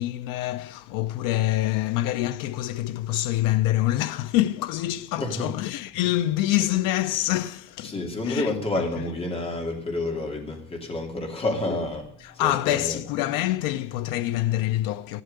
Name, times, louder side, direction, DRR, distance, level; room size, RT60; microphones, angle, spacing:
voice 1, 0.0-8.8 12.2-15.2, left 15 dB, 90° left, 0.7 m, -26 dB
voice 2, 5.2-5.5 7.8-13.0, left 2 dB, 20° left, 2.7 m, -29 dB
13.5 x 12.0 x 6.6 m
cardioid pair, 175°, 32 cm